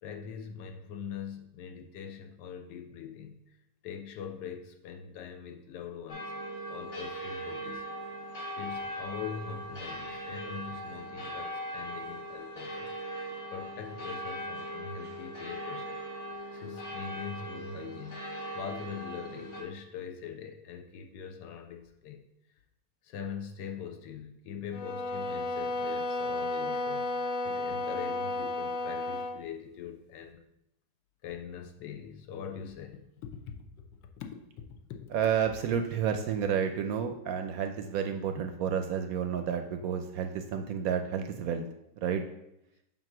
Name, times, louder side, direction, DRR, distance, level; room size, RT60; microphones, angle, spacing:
voice 1, 0.0-3.4 3.8-6.3 6.7-7.8 8.5-12.9 13.5-16.0 16.5-18.3 18.5-22.2 23.0-27.1 27.4-30.4 31.2-33.5 34.2-34.4 34.9-35.0, left 7 dB, 80° left, 4 dB, 1.3 m, -42 dB
sound 1, 6.1-19.6, equal, 45° left, 1.4 m, -40 dB
sound 2, 24.7-29.4, left 2 dB, 60° left, 0.9 m, -33 dB
voice 2, 35.1-41.6 42.0-42.2, right 8 dB, 75° right, 7 dB, 0.8 m, -30 dB
7.4 x 2.7 x 5.9 m, 0.82 s
omnidirectional pair, 1.9 m